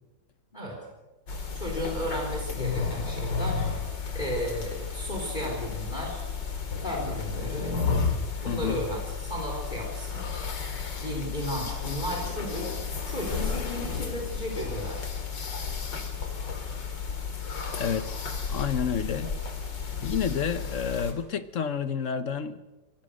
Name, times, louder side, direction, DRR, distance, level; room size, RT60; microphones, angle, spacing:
sound 1, 1.3-21.1, left 5 dB, 80° left, 3.2 m, -32 dB
voice 1, 1.5-3.6 4.1-6.2 6.8-7.8 8.4-10.2 11.0-12.7 13.1-15.0, equal, 25° left, 4.2 m, -34 dB
voice 2, 8.5-8.8 17.8-18.2 18.5-19.3 20.0-22.6, left 7 dB, 50° left, 1.2 m, -29 dB
26.0 x 19.0 x 6.4 m
omnidirectional pair, 1.9 m